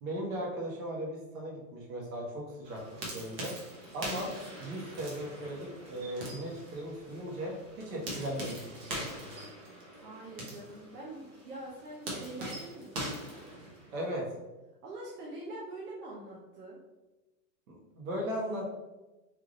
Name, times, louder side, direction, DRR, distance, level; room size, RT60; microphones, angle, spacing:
voice 1, 0.0-3.5 3.9-4.3 4.6-9.3 13.9-14.3 17.7-18.8, equal, 60° right, -2 dB, 1.5 m, -37 dB
sound 1, 2.6-14.1, right 1 dB, 40° right, 1.1 m, -42 dB
voice 2, 10.0-13.3 14.8-16.8, right 2 dB, 80° right, -4 dB, 1.1 m, -44 dB
3.5 x 2.8 x 3.9 m, 1.1 s
supercardioid pair, 165°, 46 cm